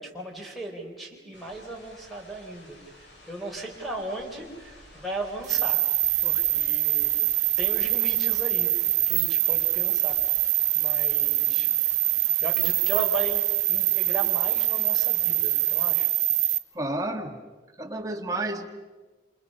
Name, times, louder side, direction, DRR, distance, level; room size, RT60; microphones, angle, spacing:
voice 1, 0.0-2.8 3.3-5.8 6.2-10.3 10.7-11.7 12.4-16.1, right 2 dB, ahead, 0 dB, 4.1 m, -36 dB
sound 1, 1.3-15.9, left 1 dB, 70° left, 7.3 m, -51 dB
sound 2, 5.5-16.6, right 13 dB, 40° right, 1.1 m, -24 dB
voice 2, 16.7-17.3 17.8-18.7, right 2 dB, 20° right, 3 dB, 2.1 m, -30 dB
28.5 x 28.0 x 5.6 m, 1.2 s
head